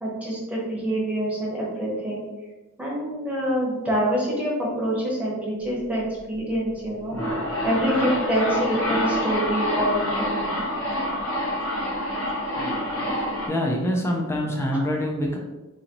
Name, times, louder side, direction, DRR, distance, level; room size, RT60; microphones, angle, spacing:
voice 1, 0.0-2.3 2.8-7.2 7.6-10.5, equal, 5° right, -5 dB, 1.0 m, -26 dB
sound 1, 6.9-13.5, equal, 70° left, 0.9 m, -27 dB
voice 2, 13.1-15.4, equal, 10° left, 0 dB, 0.5 m, -25 dB
3.9 x 2.8 x 2.9 m, 1.1 s
head